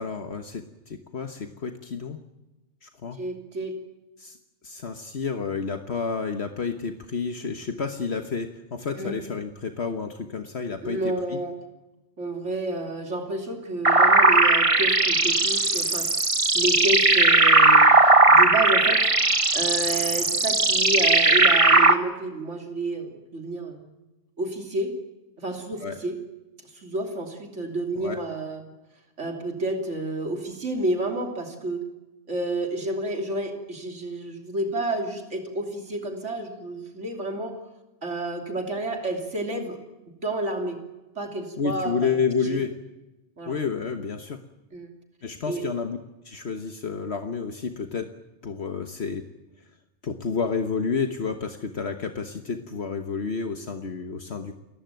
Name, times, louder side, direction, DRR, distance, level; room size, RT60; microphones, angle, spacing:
voice 1, 0.0-2.2 2.8-3.2 4.2-4.4 4.6-11.4 25.8-26.0 28.0-28.2 41.6-42.7 43.5-44.4 45.2-46.0 46.2-48.1 48.4-49.2 50.0-54.5, left 5 dB, 65° left, 6 dB, 1.5 m, -30 dB
voice 2, 3.2-3.8 9.0-9.2 10.8-11.6 12.2-16.1 16.5-19.1 19.5-23.8 24.4-24.9 25.4-26.2 26.7-28.6 29.2-31.9 32.3-37.6 38.0-39.8 40.2-40.8 41.2-42.6 43.4-43.6 44.7-44.9 45.5-45.6, right 2 dB, 90° right, 3 dB, 3.5 m, -30 dB
sound 1, 13.8-21.9, right 2 dB, 30° right, 1.5 m, -18 dB
29.0 x 15.0 x 9.3 m, 1.0 s
omnidirectional pair, 1.2 m